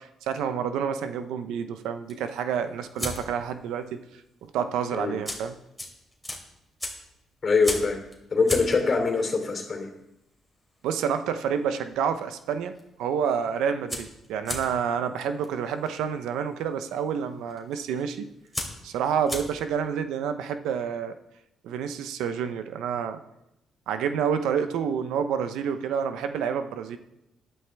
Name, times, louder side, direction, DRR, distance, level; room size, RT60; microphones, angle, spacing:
voice 1, 0.0-4.0 4.4-5.5 10.8-12.7 13.0-18.3 18.8-21.2 21.6-23.2 23.9-27.0, right 7 dB, 90° right, 9 dB, 0.7 m, -28 dB
sound 1, 2.0-3.6 3.8-4.2 4.4-4.5 5.0-12.0 12.3-12.8 13.1-13.2 13.4-19.9, left 1 dB, ahead, 2.8 m, -37 dB
voice 2, 7.4-8.0 8.3-9.9, left 4 dB, 40° left, 3 dB, 2.9 m, -23 dB
12.0 x 11.0 x 3.4 m, 0.86 s
cardioid pair, 90°, 0 cm